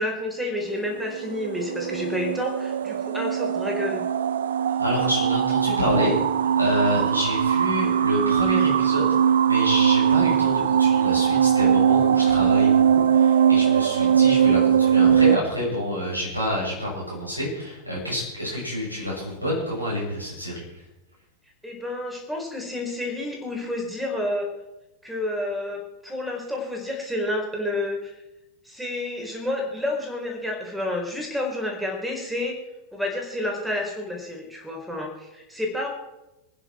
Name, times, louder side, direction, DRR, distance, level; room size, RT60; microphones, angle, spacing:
voice 1, 0.0-4.0 21.6-24.5 25.0-28.2 28.6-32.6 32.9-35.9, left 1 dB, 5° right, 1 dB, 4.2 m, -30 dB
sound 1, 0.7-15.4, right 8 dB, 65° right, 0.6 m, -20 dB
voice 2, 4.8-6.2 6.6-9.1 9.5-20.6, left 1 dB, 85° right, -5 dB, 6.9 m, -28 dB
25.0 x 10.0 x 4.4 m, 0.96 s
figure-of-eight pair, 90°, 0 cm